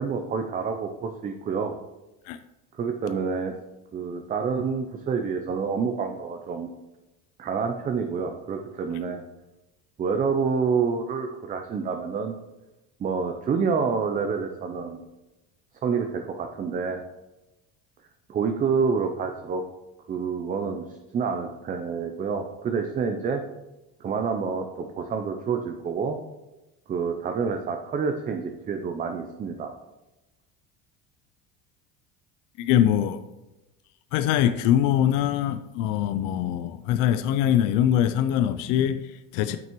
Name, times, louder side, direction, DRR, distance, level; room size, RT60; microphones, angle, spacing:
voice 1, 0.0-1.8 2.7-3.5 3.9-6.7 7.4-9.2 10.0-12.4 13.0-15.0 15.8-17.0 18.3-19.6 20.1-20.8 21.1-23.4 24.0-26.2 26.9-29.7, right 5 dB, 25° right, 0.5 m, -28 dB
voice 2, 32.6-33.2 34.1-39.6, left 10 dB, 70° left, 0.5 m, -23 dB
9.1 x 5.8 x 3.0 m
cardioid pair, 130°, 33 cm